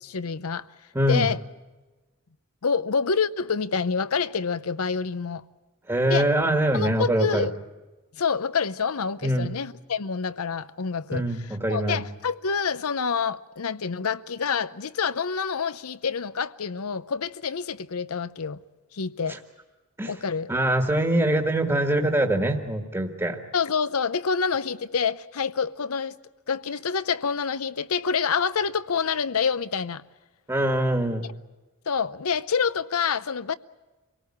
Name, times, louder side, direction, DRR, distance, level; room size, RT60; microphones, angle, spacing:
voice 1, 0.0-0.7 1.1-1.4 2.6-5.4 6.1-6.3 6.7-7.5 8.1-18.6 18.9-19.3 20.1-20.5 23.5-26.2 26.5-30.0 31.9-33.5, left 6 dB, 70° left, 0.7 m, -27 dB
voice 2, 0.9-1.3 5.9-7.5 9.2-9.5 11.1-12.0 20.0-20.1 20.5-23.4 30.5-31.3, right 1 dB, 15° right, 1.6 m, -23 dB
26.0 x 18.0 x 8.6 m
head